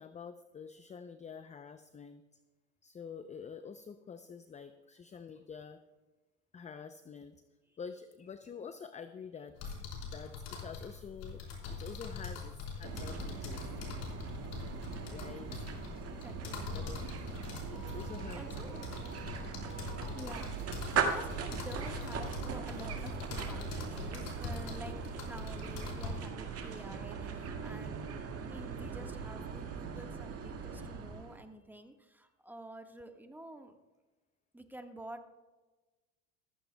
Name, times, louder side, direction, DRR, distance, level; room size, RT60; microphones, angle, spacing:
voice 1, 0.0-2.2 2.8-5.8 6.5-7.4 7.8-13.8 15.1-15.7 16.7-17.0 17.7-18.8, left 6 dB, 20° left, 10 dB, 0.6 m, -48 dB
sound 1, 9.6-26.1, left 5 dB, 65° left, 4.3 m, -43 dB
sound 2, 12.8-31.5, right 6 dB, 40° right, 1.9 m, -40 dB
voice 2, 15.4-16.7 17.6-17.8 18.3-18.9 20.1-25.0 25.2-28.0 28.5-33.7 34.5-35.3, right 1 dB, 5° right, 5 dB, 1.5 m, -49 dB
sound 3, 16.7-24.6, right 9 dB, 55° right, 3.6 m, -50 dB
14.5 x 14.5 x 2.3 m, 1.2 s
hypercardioid pair, 85°, 37 cm